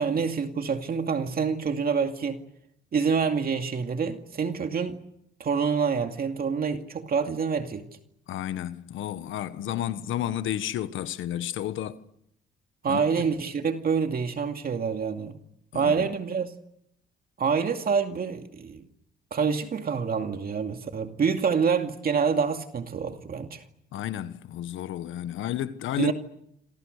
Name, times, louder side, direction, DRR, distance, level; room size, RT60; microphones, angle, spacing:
voice 1, 0.0-2.4 2.9-5.0 5.4-7.8 12.8-15.4 15.7-16.5 17.4-18.8 19.3-23.6 26.0-26.1, right 6 dB, 50° right, 2.4 m, -27 dB
voice 2, 8.3-12.0 12.9-13.0 15.7-16.1 23.9-26.1, left 11 dB, 80° left, 1.5 m, -31 dB
27.5 x 27.0 x 6.7 m
cardioid pair, 90°, 20 cm